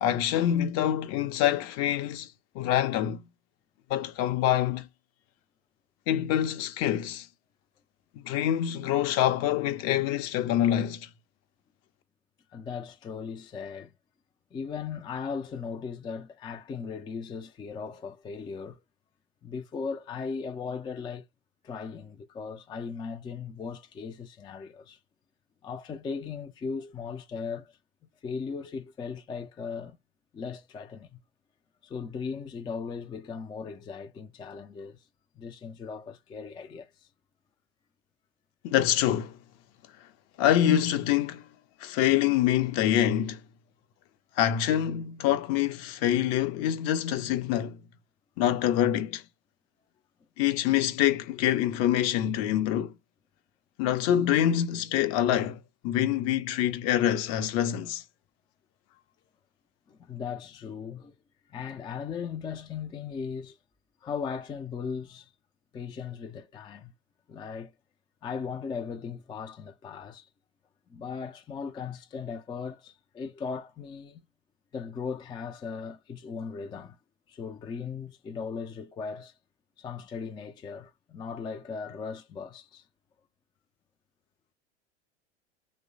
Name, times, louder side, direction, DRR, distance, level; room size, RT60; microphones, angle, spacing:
voice 1, 0.0-2.3 2.5-3.2 3.9-4.9 6.1-7.3 8.2-11.1 38.6-39.4 40.4-41.5 41.8-43.4 44.4-47.8 48.4-49.2 50.4-52.9 53.8-58.0, left 11 dB, 50° left, 0.6 m, -25 dB
voice 2, 12.5-13.9 14.5-18.8 19.4-21.3 21.6-25.0 25.6-27.8 28.2-30.0 30.3-31.2 31.8-35.1 35.4-37.1 58.9-59.0 59.9-61.1 61.5-63.6 64.0-65.3 65.7-66.9 67.3-67.7 68.2-70.3 70.9-74.2 74.7-77.0 77.3-79.4 79.8-82.9, left 5 dB, 15° left, 0.4 m, -38 dB
3.0 x 2.0 x 2.5 m
hypercardioid pair, 85°, 32 cm